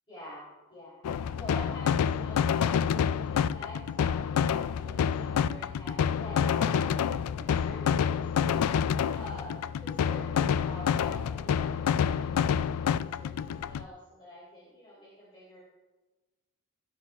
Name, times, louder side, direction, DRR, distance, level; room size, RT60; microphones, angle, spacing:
voice 1, 0.1-7.0 7.4-15.6, left 1 dB, 25° left, -8 dB, 3.4 m, -46 dB
sound 1, 1.0-13.8, left 8 dB, 80° left, 0.3 m, -28 dB
16.5 x 11.5 x 2.4 m, 1.3 s
head